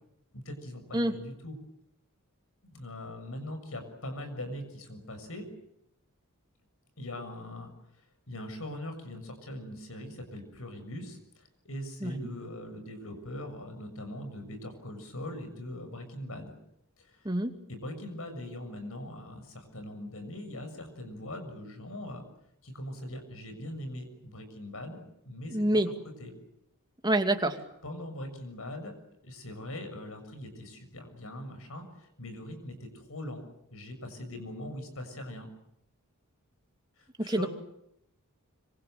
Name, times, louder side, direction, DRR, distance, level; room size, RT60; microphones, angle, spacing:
voice 1, 0.3-1.6 2.6-5.5 7.0-7.7 8.3-16.5 17.0-17.3 17.7-22.2 22.6-25.0 25.3-25.9 26.2-26.3 27.8-29.0 29.2-33.4 33.7-35.5 37.0-37.5, left 1 dB, 65° left, 7 dB, 6.9 m, -41 dB
voice 2, 25.5-25.9 27.0-27.6 37.2-37.5, right 1 dB, 20° right, 6 dB, 2.5 m, -26 dB
26.0 x 25.5 x 7.9 m, 0.78 s
head